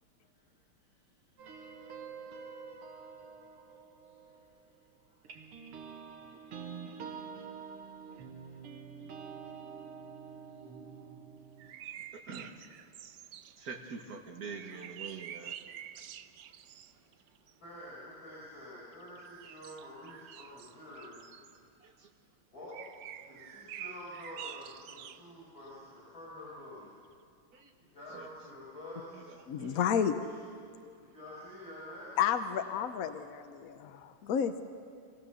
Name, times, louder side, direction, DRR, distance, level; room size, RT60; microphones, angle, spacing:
sound 1, 1.4-4.8 5.2-11.7, right 6 dB, 85° right, 2.3 m, -47 dB
voice 1, 1.7-2.2 3.0-3.1 3.7-3.8 4.2-4.3 6.4-6.8 7.7-7.8 9.1-9.2 9.7-9.8 10.5-10.6 10.8-11.0 11.8-11.9 13.5-13.6 17.6-21.3 22.5-22.8 23.1-26.9 27.8-29.3 30.1-30.2 30.9-32.2, left 1 dB, 40° left, -8 dB, 5.8 m, -48 dB
sound 2, 11.6-14.1 14.5-17.5 18.9-21.6 22.7-25.3 25.7-25.8, right 10 dB, 70° right, 1.0 m, -48 dB
voice 2, 13.6-15.6 21.8-22.1 27.5-27.7 28.1-28.3 29.1-29.8, right 5 dB, 45° right, 3 dB, 2.0 m, -45 dB
voice 3, 29.5-30.1 30.8-31.0 32.2-34.6, left 8 dB, 65° left, 9 dB, 0.8 m, -31 dB
26.0 x 16.5 x 7.0 m, 2.2 s
omnidirectional pair, 2.4 m